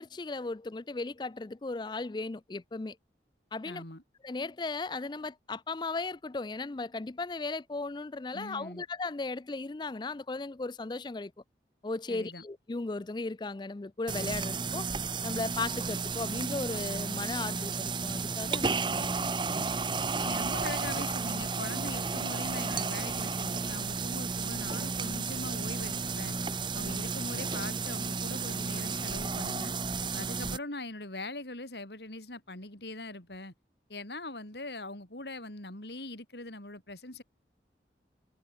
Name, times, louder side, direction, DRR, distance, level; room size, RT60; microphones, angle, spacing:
voice 1, 0.0-3.0 3.5-3.8 4.2-11.3 11.8-14.9 15.2-19.0, left 3 dB, 25° left, 0.4 m, -36 dB
voice 2, 3.6-4.0 8.3-8.8 12.1-12.4 18.9-19.3 20.2-26.3 26.7-29.7 30.1-33.5 33.9-37.2, left 2 dB, 70° left, 4.9 m, -42 dB
sound 1, 14.1-30.6, right 4 dB, 25° right, 1.1 m, -33 dB
head